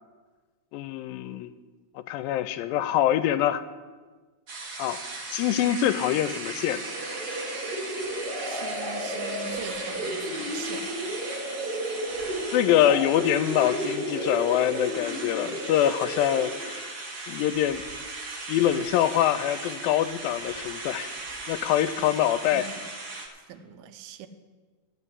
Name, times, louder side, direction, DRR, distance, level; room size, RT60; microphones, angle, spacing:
voice 1, 0.7-1.5 2.0-3.6 4.8-5.0 5.3-6.8 12.5-17.8 18.5-21.1 21.5-22.7, left 11 dB, 80° left, 12 dB, 2.2 m, -25 dB
sound 1, 4.5-23.3, right 3 dB, 50° right, 1.1 m, -37 dB
sound 2, 6.7-16.7, equal, 25° right, 4.6 m, -33 dB
voice 2, 8.5-10.9 22.5-22.6 23.5-24.3, right 7 dB, 90° right, 9 dB, 2.6 m, -41 dB
13.5 x 5.8 x 9.6 m, 1.4 s
omnidirectional pair, 4.3 m